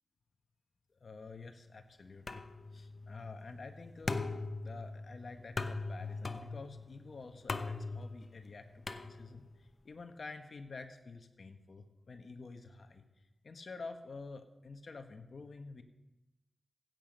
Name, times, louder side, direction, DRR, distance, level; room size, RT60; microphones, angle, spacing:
voice 1, 1.0-2.4 2.7-4.2 4.6-9.4 9.8-13.0 13.4-15.8, left 4 dB, 55° left, 7 dB, 1.2 m, -49 dB
sound 1, 2.3-9.6, left 3 dB, 40° left, 0.8 m, -41 dB
16.0 x 7.8 x 5.3 m, 0.99 s
wide cardioid pair, 110°, 0 cm